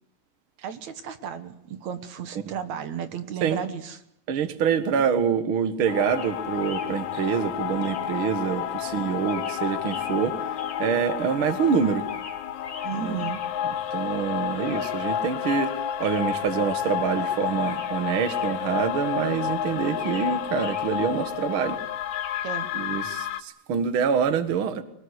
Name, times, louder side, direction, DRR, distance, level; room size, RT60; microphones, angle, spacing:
voice 1, 0.6-4.0 12.8-13.4 22.4-22.7, right 8 dB, 70° right, 10 dB, 2.7 m, -34 dB
voice 2, 4.3-10.3 10.8-12.0 13.0-13.2 13.9-15.7 16.0-21.8 22.7-24.8, right 7 dB, 50° right, 11 dB, 2.2 m, -26 dB
sound 1, 5.9-23.4, left 10 dB, 75° left, 2.5 m, -30 dB
sound 2, 6.0-22.4, left 3 dB, 45° left, 4.5 m, -46 dB
24.0 x 19.5 x 9.7 m, 0.71 s
omnidirectional pair, 3.4 m